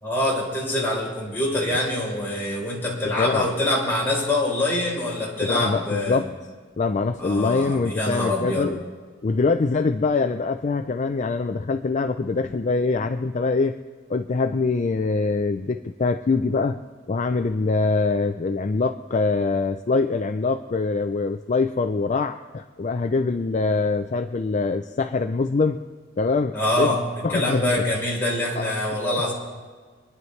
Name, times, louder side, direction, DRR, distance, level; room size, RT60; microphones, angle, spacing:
voice 1, 0.0-6.2 7.2-8.7 26.5-27.0 27.3-29.3, left 1 dB, 10° left, -5 dB, 3.9 m, -25 dB
voice 2, 3.2-3.5 5.4-6.3 6.8-8.8 9.2-13.8 14.1-16.8 17.1-25.8 26.2-27.0 27.2-27.8 28.5-28.7, left 3 dB, 40° left, 8 dB, 0.4 m, -24 dB
26.0 x 10.5 x 3.2 m, 1.5 s
head